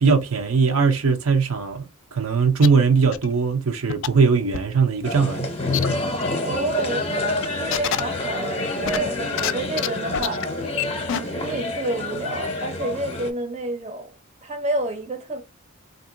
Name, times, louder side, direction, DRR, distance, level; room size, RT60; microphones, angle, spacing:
voice 1, 0.0-5.5, right 5 dB, 70° right, 0.7 m, -20 dB
sound 1, 2.6-2.7 3.1-3.3 3.9-4.1 4.5-4.6 5.7-5.9 6.2-6.3 7.4-8.0 8.8-9.5 9.8-9.9 10.1-10.4 10.8-10.9 11.1-11.2, left 9 dB, 55° left, 0.3 m, -25 dB
sound 2, 5.0-13.3, left 2 dB, 25° left, 0.7 m, -27 dB
voice 2, 6.4-7.1 7.6-10.5 11.1-14.1 14.4-15.4, right 2 dB, 30° right, 0.7 m, -29 dB
3.5 x 2.6 x 2.6 m
head